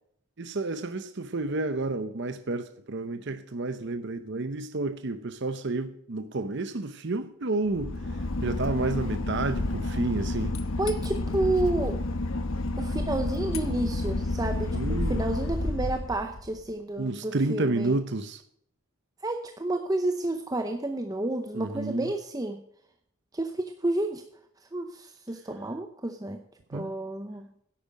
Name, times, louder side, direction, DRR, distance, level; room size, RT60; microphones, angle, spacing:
voice 1, 0.4-7.9 8.4-10.5 14.7-15.2 17.0-18.4 21.5-22.1 26.7-26.9, right 2 dB, 50° right, 0.7 m, -30 dB
Boat Water vehicle / Engine, 7.7-16.6, left 2 dB, 65° left, 1.0 m, -30 dB
voice 2, 10.8-12.0 12.8-18.0 19.2-22.6 23.3-24.2 24.7-26.4 26.7-27.5, right 2 dB, 15° right, 0.7 m, -30 dB
11.0 x 8.6 x 6.3 m
head